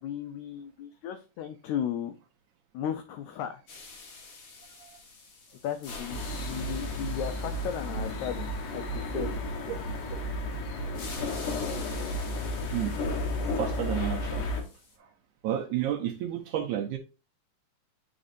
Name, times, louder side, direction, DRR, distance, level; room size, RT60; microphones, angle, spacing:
voice 1, 0.0-2.1 2.7-3.9 5.6-8.4 8.7-9.3, left 9 dB, 85° left, 1.6 m, -35 dB
sound 1, 3.7-10.3 10.9-15.0, left 3 dB, 50° left, 1.5 m, -47 dB
sound 2, 6.1-14.6, left 1 dB, 70° left, 2.5 m, -33 dB
voice 2, 12.7-13.0 13.4-14.5 15.0-15.1 15.4-17.0, right 10 dB, 80° right, 1.8 m, -31 dB
8.8 x 4.2 x 2.6 m
omnidirectional pair, 4.0 m